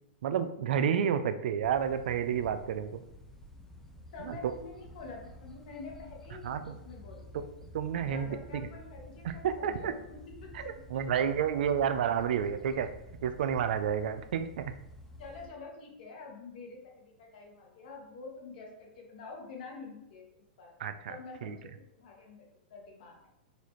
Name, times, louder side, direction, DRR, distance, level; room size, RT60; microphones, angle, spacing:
voice 1, 0.2-3.0 4.2-4.4 6.4-6.7 7.7-8.4 9.2-9.9 10.9-12.9 13.2-14.7 20.8-21.2 21.4-21.5, right 8 dB, 70° right, 10 dB, 0.3 m, -30 dB
sound 1, 1.6-15.5, left 1 dB, 5° left, 0.4 m, -51 dB
voice 2, 4.1-7.4 8.1-11.0 15.2-20.7 21.1-21.7 22.0-23.2, left 4 dB, 65° left, 0 dB, 1.2 m, -47 dB
4.1 x 2.4 x 3.0 m, 0.84 s
hypercardioid pair, 130°, 5 cm